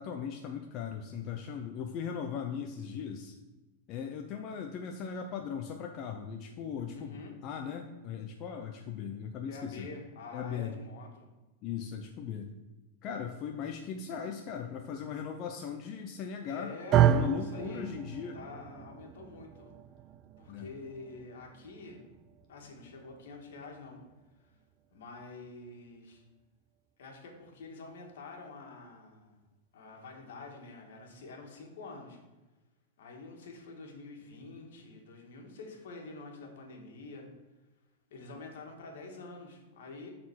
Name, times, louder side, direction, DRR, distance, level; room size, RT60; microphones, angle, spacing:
voice 1, 0.0-3.4 3.9-9.9 10.3-10.7 11.6-12.5 13.0-16.7 17.1-18.4 20.5-20.7, left 7 dB, 45° left, 3 dB, 0.7 m, -38 dB
voice 2, 6.9-7.3 9.5-11.3 16.5-17.9 18.3-19.7 20.4-22.1 22.5-24.0 24.4-24.6 24.9-26.2 27.0-29.4 29.7-32.2 33.0-37.3 38.1-40.1, left 3 dB, 75° left, 1 dB, 1.9 m, -47 dB
sound 1, 16.9-25.2, right 9 dB, 35° right, 0.4 m, -32 dB
7.0 x 4.3 x 6.4 m, 1.1 s
hypercardioid pair, 120°, 0 cm